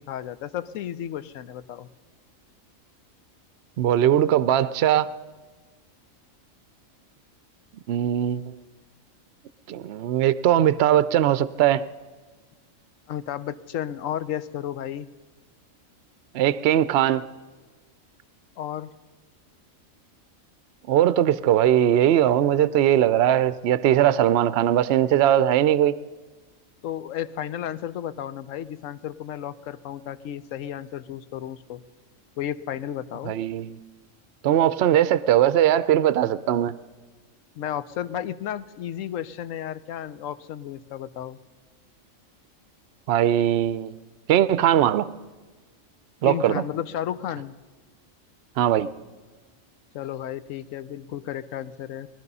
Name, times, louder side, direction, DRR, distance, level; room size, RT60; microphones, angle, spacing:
voice 1, 0.1-1.9 13.1-15.1 18.6-18.9 26.8-31.8 32.4-33.3 37.6-41.4 46.2-47.5 49.9-52.1, left 10 dB, 75° left, 15 dB, 1.0 m, -33 dB
voice 2, 3.8-5.1 7.9-8.4 9.7-11.8 16.3-17.2 20.9-25.9 33.3-33.8 34.4-36.8 43.1-43.9 44.3-45.1 46.2-46.6 48.6-48.9, right 11 dB, 60° right, 16 dB, 0.7 m, -20 dB
20.0 x 12.5 x 5.4 m, 1.3 s
omnidirectional pair, 1.4 m